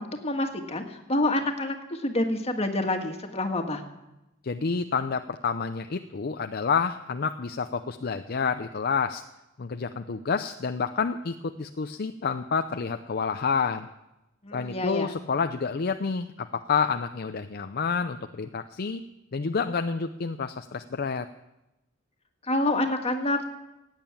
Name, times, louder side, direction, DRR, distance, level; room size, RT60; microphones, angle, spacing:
voice 1, 0.0-3.8 14.4-15.2 22.4-23.4, left 1 dB, 30° left, 4 dB, 1.8 m, -27 dB
voice 2, 4.4-9.2 9.6-13.9 14.5-19.0 19.3-21.3, left 5 dB, 50° left, 8 dB, 0.5 m, -29 dB
16.5 x 9.1 x 8.8 m, 0.95 s
head